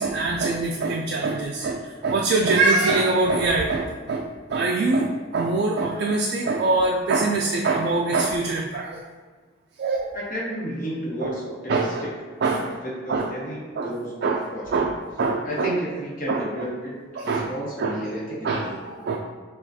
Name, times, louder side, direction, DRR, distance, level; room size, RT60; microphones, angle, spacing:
voice 1, 0.0-9.0 9.8-10.1 11.2-11.4 11.7-12.1 12.4-12.7 13.1-13.3 13.8-13.9 14.2-14.5 14.7-15.7 16.3-16.4 17.2-17.5 17.8-18.0 18.4-19.2, right 3 dB, 55° right, -1 dB, 0.3 m, -23 dB
voice 2, 10.1-12.1 12.5-14.6 15.4-17.0 17.2-18.6, equal, 45° left, -5 dB, 1.1 m, -32 dB
6.1 x 2.4 x 2.7 m, 1.4 s
head